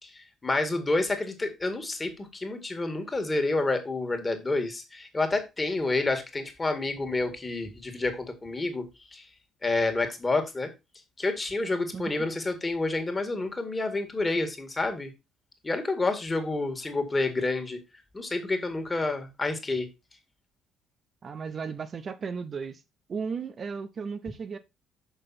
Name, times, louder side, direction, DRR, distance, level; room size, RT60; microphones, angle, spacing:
voice 1, 0.0-8.9 9.1-9.3 9.6-10.7 11.2-15.1 15.6-17.8 18.1-19.9, left 2 dB, 25° left, 2.0 m, -29 dB
voice 2, 11.9-12.3 21.2-22.8 23.1-24.6, right 5 dB, 40° right, 0.6 m, -35 dB
6.5 x 5.7 x 4.2 m
figure-of-eight pair, 50°, 0 cm